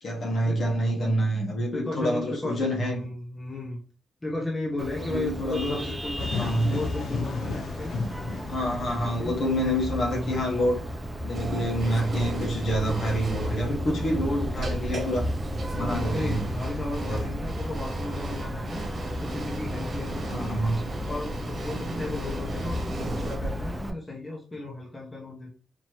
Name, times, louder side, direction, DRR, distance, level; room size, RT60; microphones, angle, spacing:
voice 1, 0.0-3.0 5.1-5.8 6.3-6.7 8.5-10.8 11.2-15.3 15.7-16.5 17.0-17.3 20.2-20.8, equal, 50° left, 1.3 m, -27 dB
voice 2, 1.7-3.8 4.2-6.3 6.6-7.9 9.0-9.3 10.1-10.4 12.7-13.0 13.6-14.0 15.7-18.8 19.2-20.5 21.0-25.5, left 2 dB, 15° left, 0.9 m, -35 dB
Vehicle horn car horn honking, 4.8-23.9, equal, 10° right, 0.5 m, -34 dB
sound 1, 6.2-9.7, left 4 dB, 80° left, 0.6 m, -33 dB
sound 2, 11.3-23.4, right 1 dB, 40° right, 1.4 m, -37 dB
4.4 x 2.9 x 3.0 m
wide cardioid pair, 165°, 0 cm